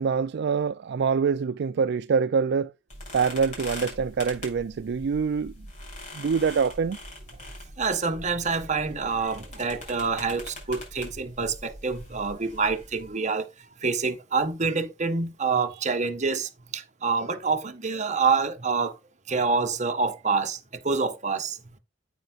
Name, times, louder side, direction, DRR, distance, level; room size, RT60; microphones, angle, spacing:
voice 1, 0.0-2.7 3.1-5.5 6.1-7.0, right 5 dB, 60° right, 0.4 m, -25 dB
sound 1, 2.9-13.1, left 1 dB, 40° left, 6.7 m, -42 dB
voice 2, 7.8-13.4 13.8-18.9 19.3-20.6 20.8-21.6, right 4 dB, 35° right, 1.3 m, -27 dB
9.2 x 9.2 x 2.4 m
head